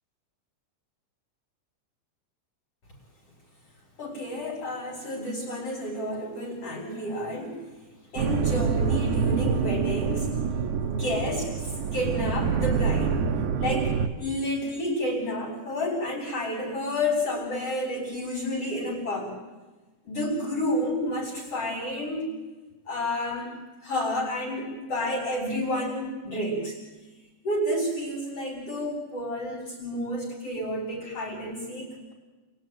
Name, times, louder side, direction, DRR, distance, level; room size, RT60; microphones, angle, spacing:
voice 1, 4.0-7.6 8.1-10.3 10.8-13.2 13.6-19.4 20.0-22.3 22.9-23.5 23.8-26.8 27.4-31.9, left 1 dB, 50° left, -1 dB, 4.4 m, -30 dB
sound 1, 8.2-14.1, right 6 dB, 75° right, 2.7 m, -26 dB
27.5 x 21.0 x 9.1 m, 1.3 s
omnidirectional pair, 3.6 m